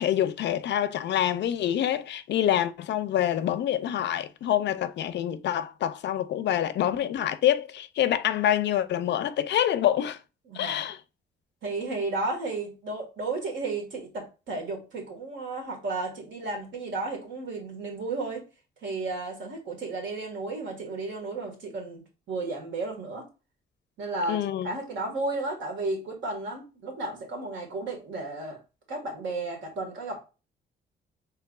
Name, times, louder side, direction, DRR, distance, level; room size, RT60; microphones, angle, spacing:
voice 1, 0.0-10.2 10.5-11.0 24.3-24.7, left 11 dB, 60° left, 0.4 m, -26 dB
voice 2, 10.5-10.8 11.6-18.4 18.8-22.0 22.3-23.3 24.0-28.6 28.9-30.3, right 3 dB, 70° right, 1.7 m, -33 dB
4.6 x 3.3 x 2.4 m
cardioid pair, 90°, 20 cm